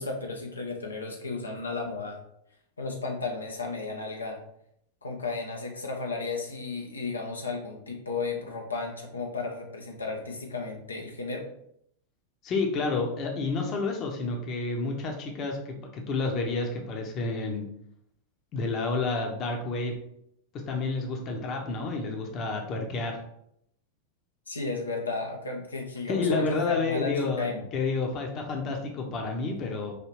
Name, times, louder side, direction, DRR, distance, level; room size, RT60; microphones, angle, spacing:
voice 1, 0.0-2.2 2.8-4.4 5.0-11.5 24.5-27.7, left 3 dB, 75° left, 1 dB, 0.6 m, -34 dB
voice 2, 12.4-17.7 18.5-19.9 20.7-23.2 26.1-29.9, left 3 dB, 35° left, 2 dB, 0.8 m, -30 dB
4.9 x 2.8 x 3.0 m, 0.73 s
figure-of-eight pair, 90°, 0 cm